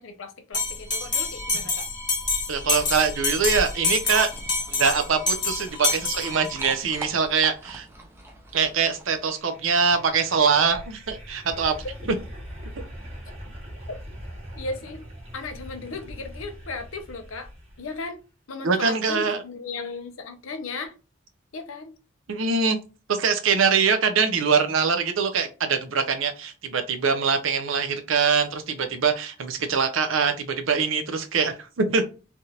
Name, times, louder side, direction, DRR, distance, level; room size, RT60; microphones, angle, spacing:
voice 1, 0.0-1.9 14.5-15.0 15.3-17.5 17.8-18.2 18.5-20.9 21.5-21.9, left 3 dB, 90° left, 0.6 m, -36 dB
Bell, 0.5-6.8, left 3 dB, 25° left, 0.9 m, -27 dB
voice 2, 2.5-4.3 4.7-7.9 8.5-11.7 18.6-19.4 22.3-22.8 23.1-32.1, right 5 dB, 80° right, 0.6 m, -23 dB
sound 1, 3.7-9.3, right 2 dB, 10° right, 0.5 m, -44 dB
sound 2, 9.0-18.1, equal, 30° right, 1.1 m, -42 dB
3.4 x 2.4 x 2.8 m
head